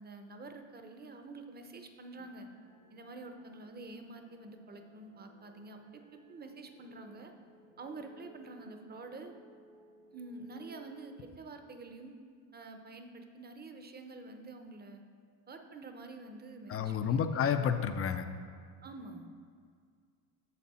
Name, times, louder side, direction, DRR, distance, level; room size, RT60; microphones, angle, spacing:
voice 1, 0.0-2.5 2.9-7.3 7.8-9.3 10.1-12.1 12.5-15.0 15.5-17.6 18.8-19.3, right 3 dB, 20° right, 6 dB, 0.7 m, -48 dB
sound 1, 2.1-11.2, right 1 dB, 75° right, 2.3 m, -61 dB
voice 2, 16.7-18.3, left 7 dB, 35° left, 9 dB, 0.4 m, -30 dB
8.4 x 6.7 x 4.2 m, 2.1 s
cardioid pair, 115°, 45 cm